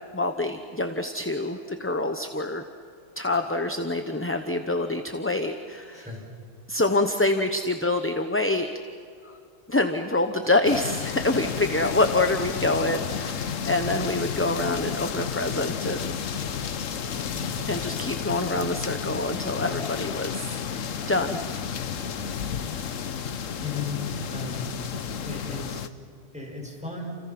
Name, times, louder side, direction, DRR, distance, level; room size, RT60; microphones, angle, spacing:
voice 1, 0.1-2.6 3.2-6.1 6.7-8.7 9.2-9.4 9.7-16.1 17.7-20.6 21.1-21.4, left 2 dB, 10° left, 6 dB, 0.9 m, -26 dB
voice 2, 5.9-6.2 17.3-17.6 23.6-24.0 24.3-24.7 25.2-25.9 26.3-27.2, left 3 dB, 5° right, -2 dB, 6.6 m, -36 dB
sound 1, 10.6-25.9, left 7 dB, 90° left, 1.4 m, -32 dB
30.0 x 28.5 x 6.1 m, 2.4 s
omnidirectional pair, 1.3 m